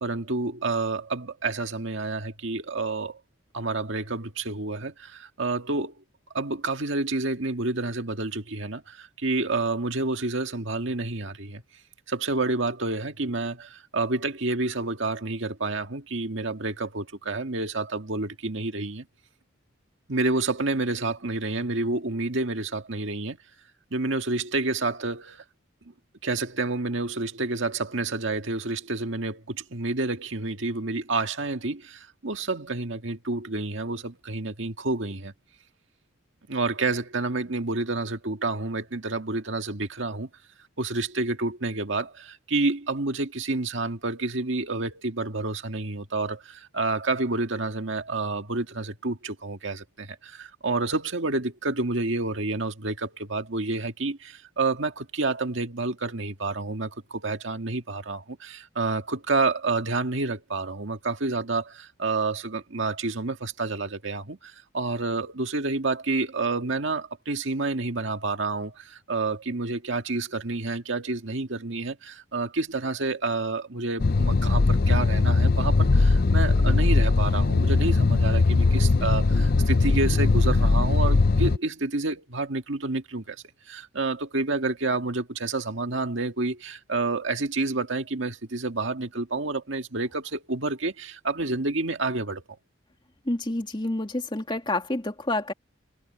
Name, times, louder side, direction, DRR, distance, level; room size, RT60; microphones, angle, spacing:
voice 1, 0.0-3.2 3.5-5.9 6.3-11.6 12.1-19.1 20.1-23.4 23.9-25.4 26.2-35.3 36.5-40.3 40.8-92.4, right 3 dB, 65° right, 1.8 m, -29 dB
sound 1, 74.0-81.6, left 3 dB, 50° left, 0.6 m, -20 dB
voice 2, 93.3-95.5, left 2 dB, 25° left, 2.3 m, -28 dB
head